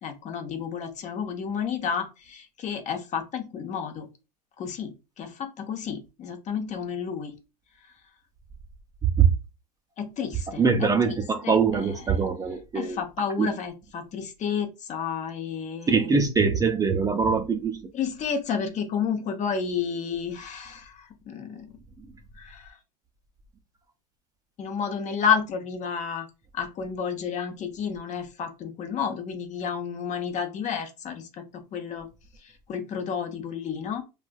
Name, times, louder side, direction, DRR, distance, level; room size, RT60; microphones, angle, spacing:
voice 1, 0.0-4.1 4.6-7.3 10.0-12.2 12.7-16.1 17.9-21.8 22.4-22.8 24.6-26.3 26.5-32.1 32.4-34.0, left 7 dB, 35° left, 0.8 m, -31 dB
voice 2, 10.6-13.0 13.4-13.5 15.9-17.8, right 5 dB, 15° right, 0.4 m, -22 dB
3.2 x 2.4 x 2.2 m
hypercardioid pair, 100°, 21 cm